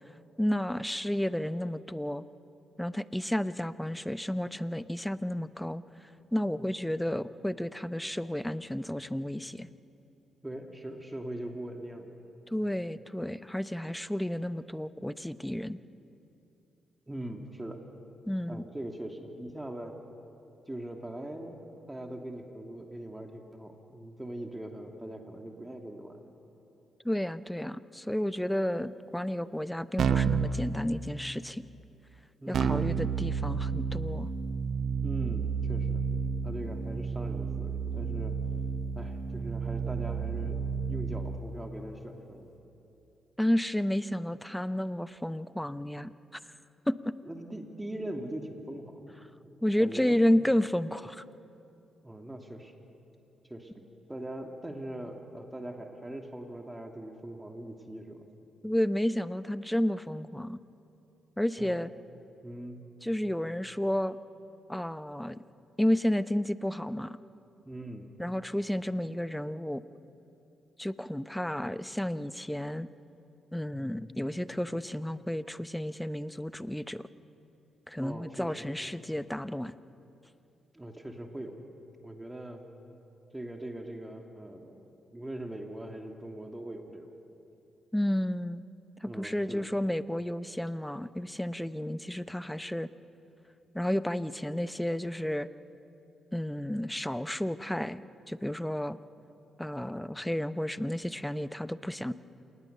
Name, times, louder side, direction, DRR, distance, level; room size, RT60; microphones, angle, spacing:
voice 1, 0.4-2.2 2.8-5.8 6.3-9.7 12.5-15.8 18.3-18.7 27.0-31.6 32.5-34.3 43.4-46.1 46.9-47.1 49.6-51.2 58.6-60.6 61.4-61.9 63.0-64.2 64.7-65.4 65.8-67.2 68.2-69.8 70.8-72.9 73.5-77.0 77.9-79.7 87.9-88.6 89.0-92.9 93.7-95.5 96.3-99.0 99.6-102.1, left 1 dB, 5° left, 14 dB, 0.8 m, -31 dB
voice 2, 10.4-12.1 17.1-17.8 18.5-20.0 20.7-26.2 32.4-32.8 35.0-36.0 36.4-38.4 38.9-42.5 47.2-49.1 49.4-50.3 52.0-52.7 53.5-58.3 61.6-61.7 62.4-62.8 67.6-68.1 78.0-78.7 80.7-81.6 82.0-82.6 83.3-84.8 85.1-87.1 89.1-89.7, right 1 dB, 15° right, 3 dB, 2.7 m, -41 dB
Keyboard (musical), 30.0-30.5 32.5-41.4, right 6 dB, 60° right, 0.9 m, -31 dB
28.0 x 19.5 x 6.8 m, 2.9 s
hypercardioid pair, 40°, 0 cm